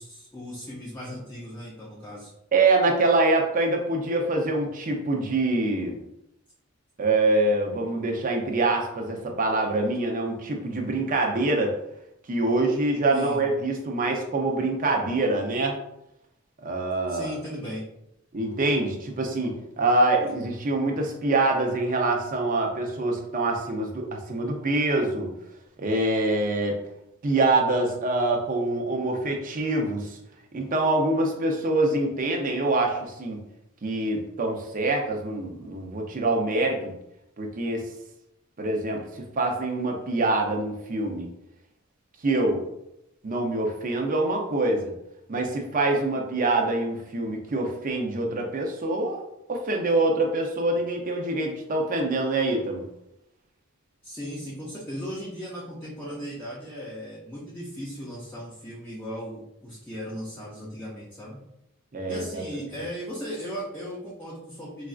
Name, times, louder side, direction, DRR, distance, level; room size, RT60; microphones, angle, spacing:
voice 1, 0.0-2.3 13.1-13.4 17.1-17.9 54.0-61.4 62.1-64.9, equal, 10° left, -6 dB, 0.5 m, -37 dB
voice 2, 2.5-6.0 7.0-11.7 12.3-15.8 16.6-17.3 18.3-25.3 25.8-26.8 27.2-30.2 30.5-33.4 33.8-36.9 37.4-37.9 38.6-41.3 42.2-42.6 43.2-44.9 45.3-49.2 49.5-52.8 61.9-62.4, right 2 dB, 40° right, 1 dB, 0.5 m, -25 dB
4.0 x 2.4 x 2.4 m, 0.82 s
head